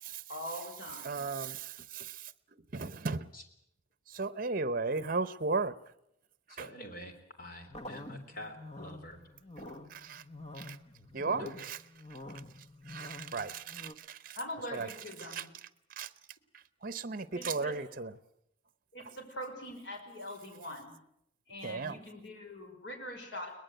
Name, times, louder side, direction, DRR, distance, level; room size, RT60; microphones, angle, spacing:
voice 1, 0.3-1.2 14.4-15.5 17.3-17.7 18.9-21.0 21.5-23.5, left 1 dB, 70° left, 4 dB, 5.4 m, -43 dB
voice 2, 1.0-2.2 2.7-3.3 4.1-5.7 6.6-6.7 9.9-10.2 10.6-10.8 11.1-11.8 12.9-14.4 14.7-14.9 15.3-15.4 16.0-16.1 16.8-18.1 21.6-22.0, right 4 dB, 50° right, 16 dB, 0.9 m, -35 dB
voice 3, 6.5-7.1 7.4-9.2 11.3-11.5, left 1 dB, 50° left, 6 dB, 3.5 m, -46 dB
sound 1, 7.7-14.0, left 1 dB, 35° left, 1.4 m, -47 dB
22.0 x 20.0 x 8.0 m, 0.78 s
head